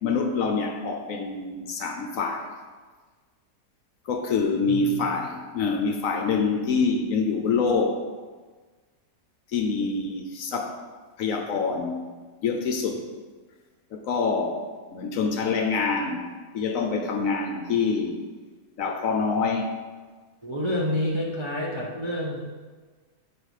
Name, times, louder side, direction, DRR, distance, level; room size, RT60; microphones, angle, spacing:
voice 1, 0.0-2.5 4.1-8.1 9.5-10.8 11.2-12.0 12.4-13.1 13.9-16.3 16.5-18.2 18.8-19.7, left 4 dB, 65° left, 4 dB, 0.9 m, -26 dB
voice 2, 20.4-22.5, left 1 dB, 40° right, -3 dB, 0.4 m, -28 dB
5.4 x 4.8 x 6.3 m, 1.4 s
omnidirectional pair, 1.7 m